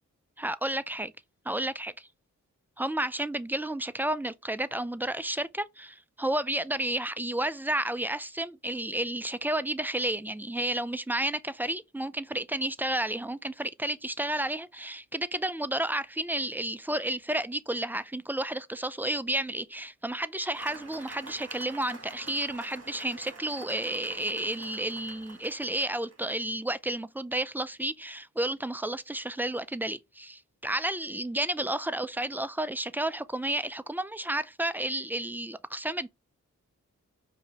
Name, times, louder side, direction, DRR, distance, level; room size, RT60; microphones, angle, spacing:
voice 1, 0.4-1.1 1.5-1.9 2.8-36.1, right 1 dB, 5° right, 0.4 m, -31 dB
Cheering / Applause, 20.5-26.3, right 3 dB, 45° right, 1.7 m, -47 dB
4.7 x 2.8 x 3.0 m
cardioid pair, 50°, 33 cm